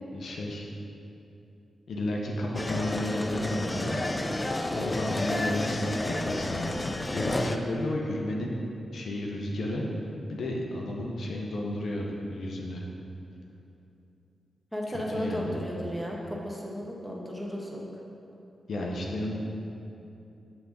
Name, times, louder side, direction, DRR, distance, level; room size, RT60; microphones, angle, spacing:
voice 1, 0.1-0.7 1.9-4.0 4.6-6.7 7.1-8.6 8.9-9.9 10.3-12.8 14.9-15.6 18.7-19.4, left 1 dB, 70° left, -1 dB, 0.7 m, -32 dB
sound 1, 2.6-7.6, left 1 dB, 25° left, 0.4 m, -31 dB
voice 2, 14.7-17.8, equal, ahead, -3 dB, 1.2 m, -34 dB
7.9 x 3.5 x 3.8 m, 2.8 s
supercardioid pair, 45°, 0 cm